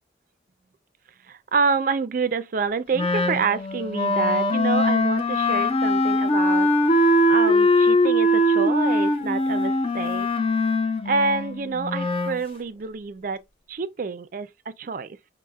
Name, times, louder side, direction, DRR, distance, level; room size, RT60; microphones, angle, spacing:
voice 1, 1.3-6.7 7.3-10.3 11.1-13.4 13.7-15.2, right 4 dB, 45° right, 0.4 m, -27 dB
Wind instrument woodwind instrument, 2.9-12.4, left 1 dB, 30° left, 0.4 m, -21 dB
6.1 x 2.1 x 2.3 m
head